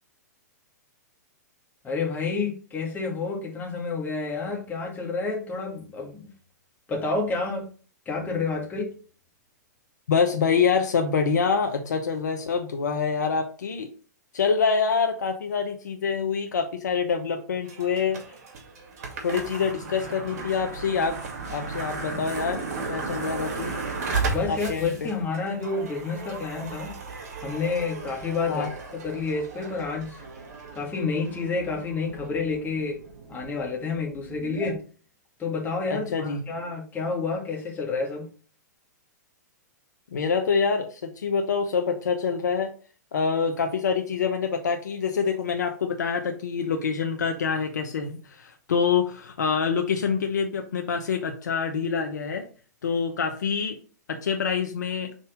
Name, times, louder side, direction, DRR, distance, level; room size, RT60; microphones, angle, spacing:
voice 1, 1.8-6.3 6.9-7.7 8.1-8.9 24.3-26.9 27.4-28.7 29.0-30.2 30.7-33.0 33.3-34.8 35.4-38.2, left 4 dB, 20° left, 0 dB, 2.1 m, -29 dB
voice 2, 10.1-13.9 14.3-18.2 19.2-21.2 21.5-23.7 24.5-25.1 28.5-28.7 35.9-36.4 40.1-42.7 43.1-52.5 52.8-53.8 54.1-55.1, left 6 dB, 75° left, 5 dB, 0.9 m, -26 dB
sound 1, 17.6-34.7, right 4 dB, 60° right, 2.1 m, -35 dB
5.3 x 4.1 x 5.0 m, 0.40 s
hypercardioid pair, 115°, 10 cm